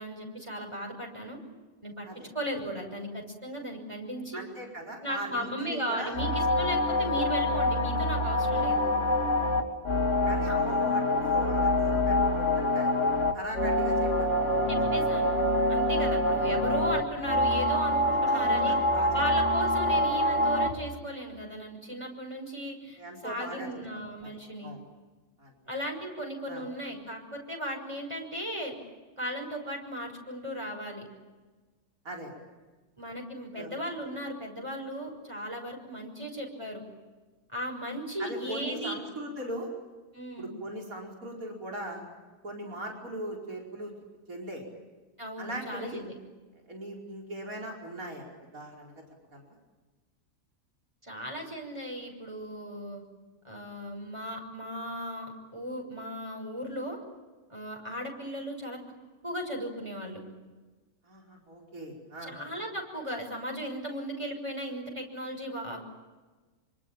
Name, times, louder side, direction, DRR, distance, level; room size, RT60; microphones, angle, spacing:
voice 1, 0.0-1.4 1.8-2.1 2.3-4.4 5.0-8.9 14.7-15.3 15.7-18.8 19.1-24.8 25.7-28.8 29.2-31.1 33.0-36.8 37.5-39.0 40.1-40.6 45.2-46.2 51.0-53.0 53.4-57.0 57.5-58.8 59.2-60.2 62.2-65.8, equal, 20° right, 1 dB, 6.3 m, -36 dB
voice 2, 4.3-6.2 10.3-12.9 13.3-14.3 14.8-14.9 16.0-16.1 18.2-19.2 23.0-23.7 24.2-24.8 25.4-25.5 26.5-26.6 32.1-32.3 33.6-33.7 38.2-39.7 40.4-42.0 42.4-43.9 44.3-44.6 45.4-46.0 46.7-48.2 48.5-49.0 49.3-49.5 61.0-62.3, right 1 dB, 65° right, 0 dB, 5.4 m, -39 dB
sound 1, 6.1-20.7, left 1 dB, 50° left, 3.2 m, -26 dB
26.5 x 25.5 x 8.9 m, 1.3 s
omnidirectional pair, 1.6 m